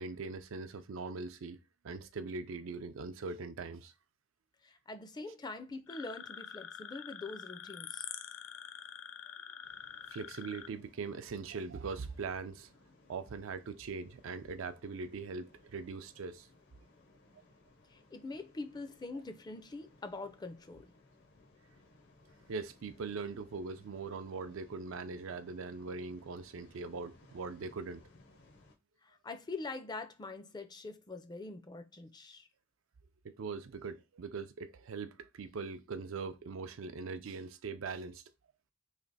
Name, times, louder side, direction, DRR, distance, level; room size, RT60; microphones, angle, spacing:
voice 1, 0.0-3.9 10.1-12.7 13.1-16.5 22.5-28.0 33.2-38.2, right 4 dB, 75° right, 0.4 m, -41 dB
voice 2, 4.6-8.1 17.9-20.9 29.0-32.5, left 3 dB, 20° left, 0.4 m, -44 dB
sound 1, 5.9-10.7, left 9 dB, 80° left, 0.5 m, -46 dB
sound 2, 9.6-28.7, left 2 dB, 60° left, 0.8 m, -63 dB
3.3 x 2.9 x 4.0 m
head